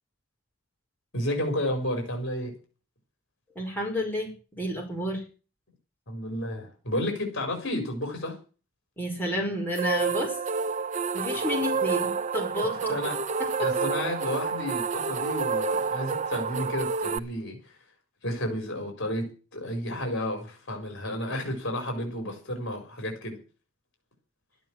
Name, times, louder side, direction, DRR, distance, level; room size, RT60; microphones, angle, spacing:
voice 1, 1.1-2.5 6.1-8.4 12.9-13.2 13.6-17.6 18.2-19.3 19.5-23.4, left 1 dB, 55° left, 4 dB, 4.7 m, -31 dB
voice 2, 3.6-5.2 9.0-10.4 11.1-12.9 13.4-13.7, left 1 dB, 10° left, -1 dB, 5.3 m, -31 dB
sound 1, 9.8-17.2, right 5 dB, 35° right, 0.7 m, -29 dB
12.5 x 9.1 x 8.9 m, 0.36 s
head